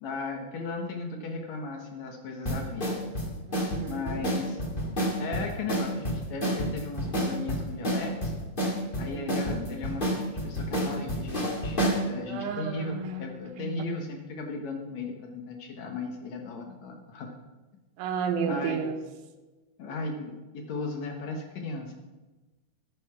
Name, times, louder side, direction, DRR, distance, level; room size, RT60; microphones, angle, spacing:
voice 1, 0.0-3.0 3.9-4.6 5.2-8.3 9.0-17.3 18.5-18.9 19.8-21.9, left 3 dB, 70° left, 3 dB, 1.7 m, -36 dB
sound 1, 2.4-12.0, equal, 35° left, 0.7 m, -29 dB
voice 2, 3.5-4.3 8.9-9.7 12.3-13.9 18.0-19.0, right 6 dB, 75° right, 6 dB, 2.7 m, -33 dB
11.5 x 9.4 x 5.8 m, 1.2 s
omnidirectional pair, 4.7 m